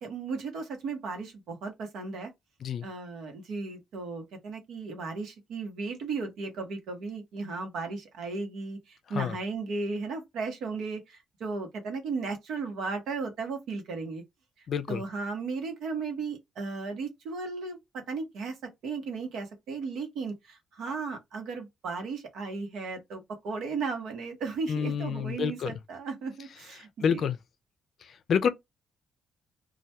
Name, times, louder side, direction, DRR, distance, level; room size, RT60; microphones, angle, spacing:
voice 1, 0.0-2.3 2.8-14.2 14.9-18.6 18.8-27.3, right 4 dB, 80° right, 0.9 m, -35 dB
voice 2, 14.7-15.0 24.7-25.7 27.0-27.4 28.3-28.5, left 7 dB, 60° left, 0.4 m, -27 dB
2.3 x 2.2 x 2.8 m
cardioid pair, 90°, 0 cm